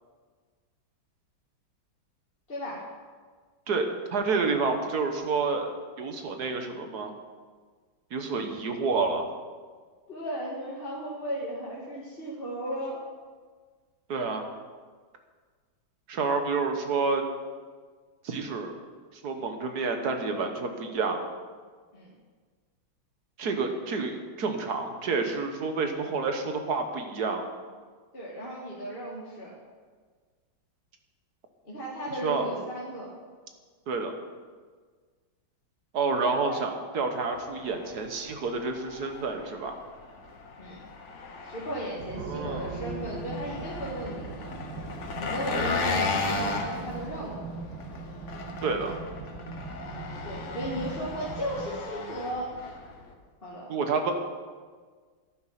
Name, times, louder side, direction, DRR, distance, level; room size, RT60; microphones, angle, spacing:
voice 1, 2.5-2.9 10.1-13.0 21.9-22.1 28.1-29.5 31.6-33.1 36.2-36.6 40.6-40.8 41.4-44.5 45.2-47.4 50.2-52.5 53.4-53.7, equal, 30° left, -6 dB, 2.0 m, -35 dB
voice 2, 3.7-5.7 6.0-7.1 8.1-9.2 14.1-14.5 16.1-17.2 18.2-18.7 19.2-21.2 23.4-27.4 32.2-32.5 33.9-34.1 35.9-39.8 42.2-42.7 48.6-49.0 53.7-54.1, right 4 dB, 55° right, 5 dB, 1.6 m, -29 dB
Engine, 37.3-53.1, left 3 dB, 45° left, 1.2 m, -36 dB
sound 1, 42.0-51.7, right 4 dB, 75° right, 2.2 m, -40 dB
11.0 x 9.4 x 5.8 m, 1.5 s
omnidirectional pair, 2.2 m